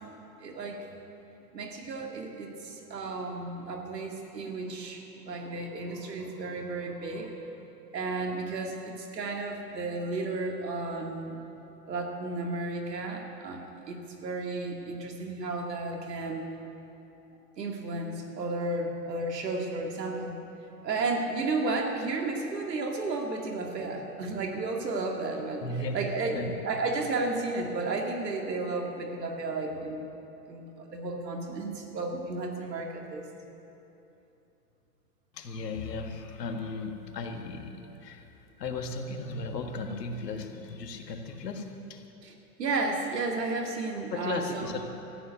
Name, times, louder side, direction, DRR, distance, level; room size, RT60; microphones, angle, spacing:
voice 1, 0.4-0.8 1.5-7.3 7.9-11.4 11.9-16.4 17.6-20.4 20.8-25.6 25.9-26.4 26.6-30.0 30.5-33.2 42.2-42.3 42.6-44.7, right 3 dB, 85° right, 2 dB, 2.5 m, -33 dB
voice 2, 25.6-26.5 35.3-38.3 38.6-42.1 44.1-44.9, left 3 dB, 80° left, 5 dB, 1.8 m, -36 dB
14.0 x 9.9 x 9.5 m, 2.9 s
hypercardioid pair, 120°, 48 cm